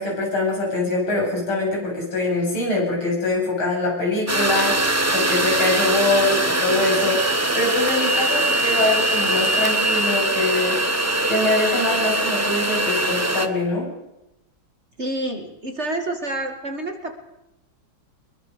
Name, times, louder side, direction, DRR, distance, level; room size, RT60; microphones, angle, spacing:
voice 1, 0.0-10.8 11.3-13.9, left 2 dB, 80° left, -2 dB, 9.0 m, -23 dB
sound 1, 4.3-13.5, right 1 dB, 10° right, 0.7 m, -22 dB
voice 2, 15.0-17.1, right 1 dB, 30° right, 5 dB, 2.3 m, -28 dB
23.5 x 22.0 x 6.8 m, 0.89 s
omnidirectional pair, 2.3 m